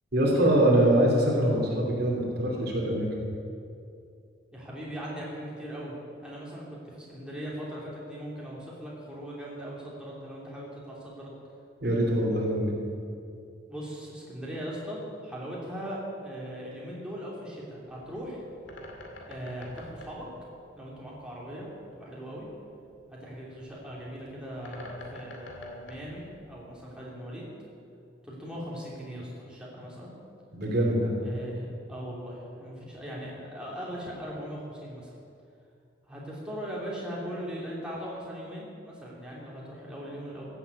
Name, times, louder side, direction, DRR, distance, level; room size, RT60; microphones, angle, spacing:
voice 1, 0.1-3.1 11.8-12.7 30.5-31.2, right 1 dB, 55° right, -2 dB, 3.0 m, -23 dB
voice 2, 4.5-11.3 13.7-18.4 19.1-20.3 20.7-22.5 23.1-27.5 28.2-30.1 31.2-35.2 36.1-40.4, equal, 5° right, -6 dB, 3.0 m, -39 dB
Bird, 17.8-27.0, left 1 dB, 75° left, 2.4 m, -49 dB
15.5 x 8.2 x 8.3 m, 2.5 s
head